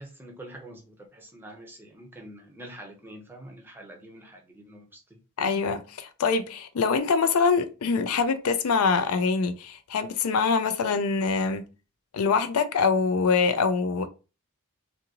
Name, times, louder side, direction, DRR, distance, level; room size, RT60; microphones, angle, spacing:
voice 1, 0.0-5.2, right 1 dB, 10° right, 0.6 m, -45 dB
voice 2, 5.4-11.6 12.1-14.1, left 5 dB, 75° left, 0.4 m, -24 dB
2.6 x 2.5 x 2.8 m
head